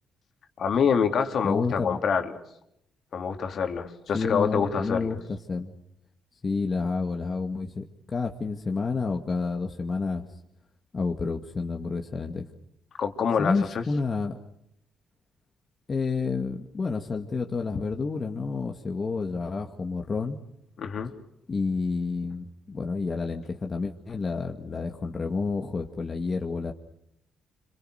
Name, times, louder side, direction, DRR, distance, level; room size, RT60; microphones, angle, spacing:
voice 1, 0.6-2.3 3.1-5.1 13.0-13.8 20.8-21.1, left 6 dB, 60° left, 5 dB, 3.4 m, -26 dB
voice 2, 1.4-2.0 4.1-5.7 6.4-10.3 10.9-12.5 13.4-14.4 15.9-20.4 21.5-26.7, left 4 dB, 35° left, 3 dB, 2.1 m, -29 dB
27.5 x 26.5 x 6.6 m, 0.78 s
cardioid pair, 90°, 0 cm